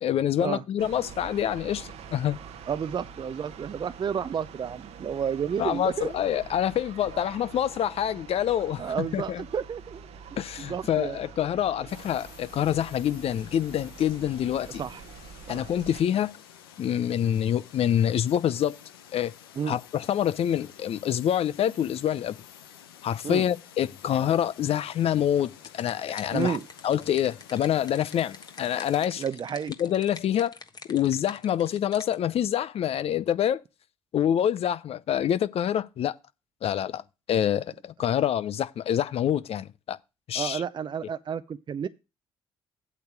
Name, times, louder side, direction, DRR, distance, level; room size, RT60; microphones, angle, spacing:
voice 1, 0.0-2.4 5.6-9.4 10.4-14.8 15.5-16.3 16.8-18.8 19.1-19.3 19.7-22.4 23.0-26.6 26.8-29.2 29.8-30.5 30.9-33.6 34.1-36.1 36.6-37.0 37.3-40.0 40.3-40.6, left 10 dB, 55° left, 0.6 m, -26 dB
sound 1, 0.8-16.0, right 6 dB, 60° right, 1.0 m, -46 dB
voice 2, 2.7-6.2 8.8-10.0 10.7-11.2 14.7-15.0 15.5-15.7 19.6-19.8 23.2-23.4 26.3-26.6 29.2-29.7 40.3-41.9, right 7 dB, 40° right, 0.6 m, -31 dB
sound 2, 11.9-29.1, left 9 dB, 90° left, 0.7 m, -50 dB
sound 3, 25.6-32.2, left 4 dB, 35° left, 1.4 m, -47 dB
8.3 x 7.0 x 4.7 m
hypercardioid pair, 50°, 12 cm